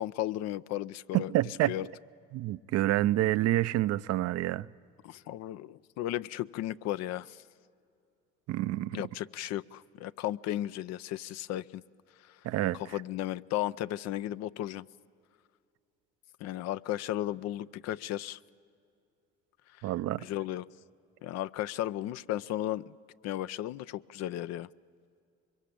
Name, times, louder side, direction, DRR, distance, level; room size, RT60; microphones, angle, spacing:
voice 1, 0.0-1.9 5.0-7.4 8.9-11.8 12.2-12.4 12.7-14.9 16.4-18.4 20.2-20.6 21.2-23.0 23.2-24.7, left 13 dB, 65° left, 0.5 m, -35 dB
voice 2, 1.1-1.7 2.3-4.7 8.5-9.0 12.4-12.8 19.8-20.2, right 15 dB, 60° right, 0.5 m, -28 dB
24.0 x 22.5 x 8.5 m
supercardioid pair, 70°, 29 cm